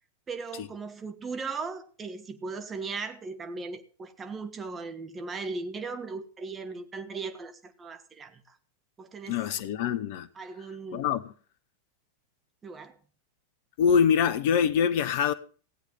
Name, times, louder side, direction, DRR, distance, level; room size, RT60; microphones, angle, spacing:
voice 1, 0.3-8.6 9.0-9.4 10.3-11.1 12.6-13.0, right 4 dB, 20° right, 1.5 m, -38 dB
voice 2, 9.3-10.3 10.9-11.3 13.8-15.3, left 7 dB, 50° left, 0.9 m, -24 dB
16.5 x 8.2 x 5.5 m
figure-of-eight pair, 90°, 0 cm